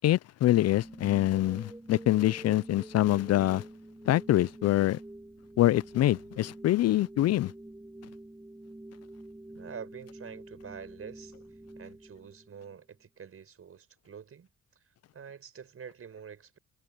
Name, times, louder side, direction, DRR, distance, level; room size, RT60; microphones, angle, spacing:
voice 1, 0.0-3.6 4.1-5.0 5.6-7.5, left 14 dB, 55° left, 0.5 m, -25 dB
sound 1, 0.7-12.8, right 1 dB, 10° right, 6.5 m, -47 dB
voice 2, 9.5-11.4 11.7-14.5 14.8-14.9 15.1-16.6, right 7 dB, 50° right, 5.8 m, -46 dB
cardioid pair, 90°, 30 cm